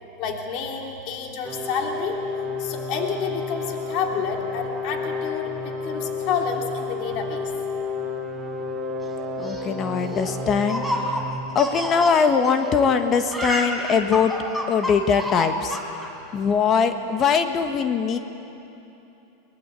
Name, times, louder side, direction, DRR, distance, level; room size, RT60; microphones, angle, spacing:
voice 1, 0.2-2.2 2.6-5.5 5.8-7.5, left 5 dB, 50° left, 1 dB, 3.2 m, -29 dB
sound 1, 1.4-11.3, left 3 dB, 10° right, 4.5 m, -31 dB
Laughter, 9.1-12.9 13.2-16.1, equal, 5° left, 4.4 m, -29 dB
voice 2, 9.4-10.8 11.5-14.3 14.7-15.8 16.3-18.2, left 6 dB, 35° left, 7 dB, 1.5 m, -21 dB
22.5 x 21.0 x 8.4 m, 2.9 s
hypercardioid pair, 105°, 0 cm